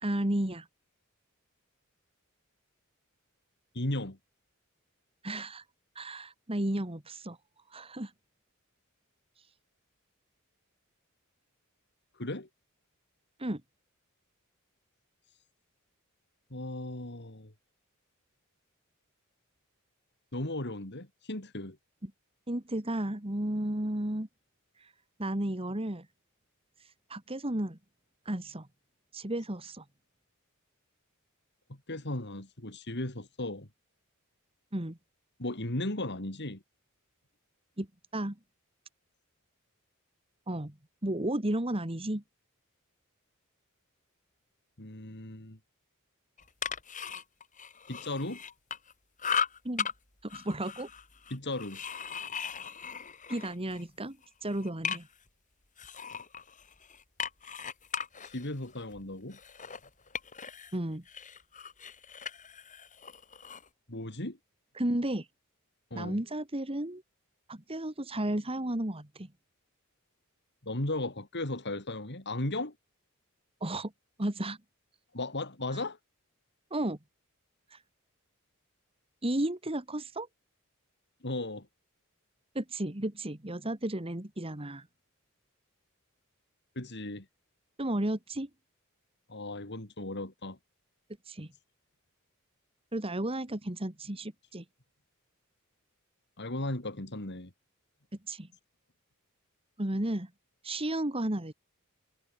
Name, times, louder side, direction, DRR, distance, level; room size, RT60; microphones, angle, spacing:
voice 1, 0.0-0.7 5.2-5.6 6.0-7.4 7.7-8.1 13.4-13.6 22.0-22.1 22.5-24.3 24.8-24.9 25.2-26.1 27.1-27.8 28.3-28.7 29.1-29.8 34.7-35.0 37.8-37.9 38.1-38.4 40.5-40.7 41.0-42.2 49.6-49.9 50.2-50.9 53.3-54.2 54.4-55.1 60.7-61.0 64.8-65.3 65.9-67.0 67.5-69.3 73.6-73.9 74.2-74.6 76.7-77.0 77.7-77.8 79.2-80.3 82.6-84.9 87.8-88.5 91.3-91.5 92.9-94.6 98.3-98.5 99.8-100.3 100.6-101.5, right 1 dB, 25° right, 2.0 m, -33 dB
voice 2, 3.7-4.2 12.1-12.5 16.5-17.5 20.3-21.8 31.9-33.7 35.4-36.6 44.8-45.6 47.9-48.4 51.3-51.8 58.2-59.4 63.9-64.4 65.9-66.2 70.6-72.7 75.1-76.0 81.2-81.7 86.8-87.3 89.3-90.6 96.4-97.5, left 1 dB, 50° left, 3.8 m, -36 dB
sound 1, 46.4-48.9 49.2-49.9 50.3-53.8 54.2-55.3 55.8-60.8 61.1-63.7, left 7 dB, 35° left, 5.8 m, -38 dB
head